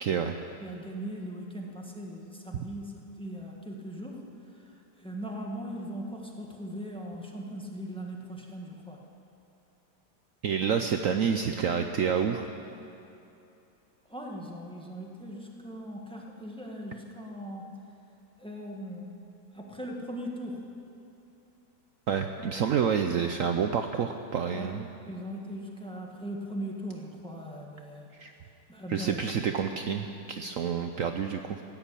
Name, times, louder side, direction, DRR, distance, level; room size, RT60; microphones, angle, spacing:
voice 1, 0.0-0.3 10.4-12.5 22.1-24.9 28.2-28.3 28.9-31.6, right 7 dB, 65° right, 6 dB, 0.8 m, -28 dB
voice 2, 0.6-9.0 14.1-17.8 18.4-19.1 19.5-20.7 24.5-24.7 25.1-28.1 28.7-29.2, equal, 5° left, -1 dB, 1.4 m, -39 dB
16.0 x 9.8 x 8.4 m, 2.8 s
omnidirectional pair, 1.9 m